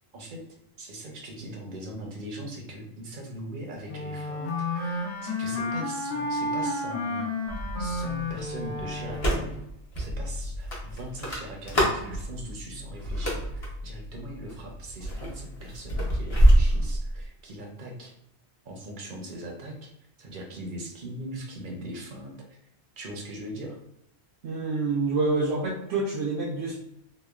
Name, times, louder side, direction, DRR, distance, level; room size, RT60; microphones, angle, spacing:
voice 1, 0.1-0.4 0.8-7.3 7.8-9.6 10.0-18.1 18.6-19.9 20.2-22.6 23.0-23.8, right 1 dB, 55° right, 1 dB, 0.6 m, -40 dB
Wind instrument woodwind instrument, 3.9-9.6, left 2 dB, 85° left, 1.0 m, -31 dB
sound 1, 7.5-16.5, equal, 65° left, 1.1 m, -38 dB
sound 2, 9.1-9.6 9.9-10.1 10.7-12.1 13.0-13.7 14.4-14.7 15.0-17.3, right 1 dB, 35° left, 0.7 m, -23 dB
voice 2, 24.4-26.8, right 3 dB, 90° right, -5 dB, 0.9 m, -27 dB
2.9 x 2.1 x 2.2 m, 0.83 s
omnidirectional pair, 1.1 m